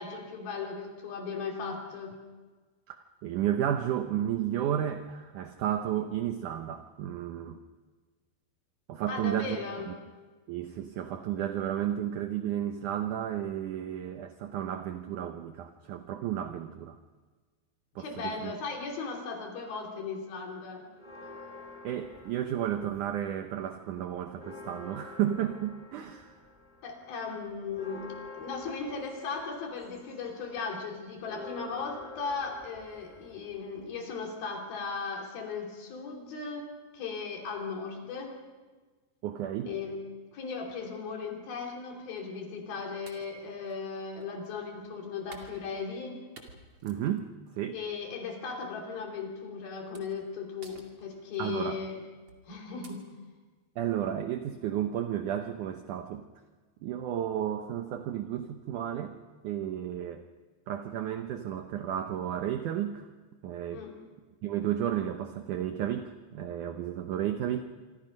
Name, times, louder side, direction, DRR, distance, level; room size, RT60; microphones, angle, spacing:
voice 1, 0.0-2.2 9.1-9.9 18.0-20.9 26.8-36.7 36.9-38.4 39.7-40.0 40.3-46.2 47.7-52.0 52.5-53.0 63.7-64.0, left 5 dB, 60° left, 1 dB, 4.6 m, -37 dB
voice 2, 2.9-7.6 8.9-9.6 9.9-10.0 10.5-17.0 18.0-18.5 21.8-26.3 39.2-39.7 46.8-47.3 47.5-47.8 51.4-51.8 53.8-56.2 56.8-59.2 59.4-60.3 60.7-63.1 63.4-63.9 64.4-67.6, right 10 dB, 80° right, 7 dB, 1.8 m, -32 dB
sound 1, 21.0-23.3 23.7-34.2, left 3 dB, 15° left, 1.7 m, -48 dB
sound 2, 42.2-42.4 43.1-44.6 45.3-46.1 46.4-47.6 48.0-48.3 49.1-49.3 49.9-50.3 50.6-51.5 52.3-52.5 52.8-52.9, right 3 dB, 35° right, 2.8 m, -53 dB
26.0 x 26.0 x 5.4 m, 1.4 s
omnidirectional pair, 4.9 m